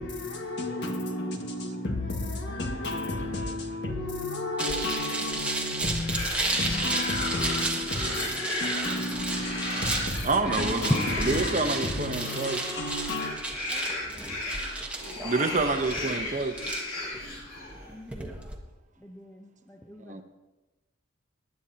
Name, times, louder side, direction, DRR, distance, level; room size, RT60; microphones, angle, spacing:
voice 1, 0.0-13.4, left 2 dB, 55° left, 1.7 m, -32 dB
sound 1, 4.6-18.6, right 2 dB, 5° right, 1.2 m, -33 dB
sound 2, 5.9-17.9, left 2 dB, 85° left, 3.5 m, -35 dB
voice 2, 10.2-12.6 15.2-16.5 20.0-20.2, right 3 dB, 35° right, 0.8 m, -28 dB
voice 3, 13.7-14.4 17.1-17.2 17.9-18.3 19.0-20.2, left 1 dB, 10° left, 0.6 m, -49 dB
20.0 x 10.5 x 2.8 m
head